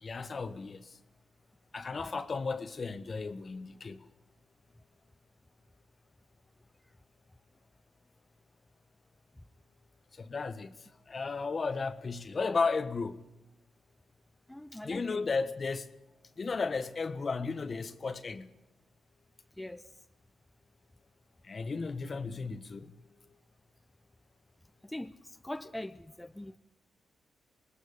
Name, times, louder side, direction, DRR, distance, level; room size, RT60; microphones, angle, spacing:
voice 1, 0.0-0.9 1.7-4.0 10.2-10.7 11.1-13.2 14.8-15.9 16.4-18.5 21.4-22.9, left 4 dB, 45° left, 1.5 m, -34 dB
voice 2, 14.5-15.2 19.6-19.8 24.8-25.1 25.4-26.6, left 1 dB, 10° left, 0.8 m, -41 dB
26.0 x 20.5 x 5.3 m
cardioid pair, 65°, 0 cm